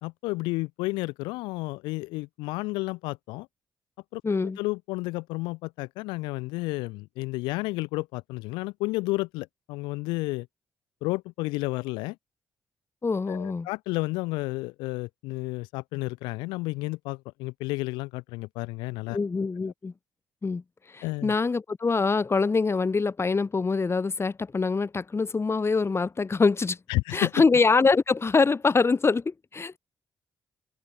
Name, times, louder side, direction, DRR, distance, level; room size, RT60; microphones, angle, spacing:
voice 1, 0.0-3.5 4.1-10.5 11.0-12.2 13.3-19.2 21.0-21.3 26.9-27.3, left 23 dB, 85° left, 2.4 m, -31 dB
voice 2, 4.2-4.6 13.0-13.7 19.1-19.9 20.4-20.6 20.9-26.8 27.1-29.8, left 4 dB, 35° left, 1.0 m, -24 dB
hypercardioid pair, 45°, 8 cm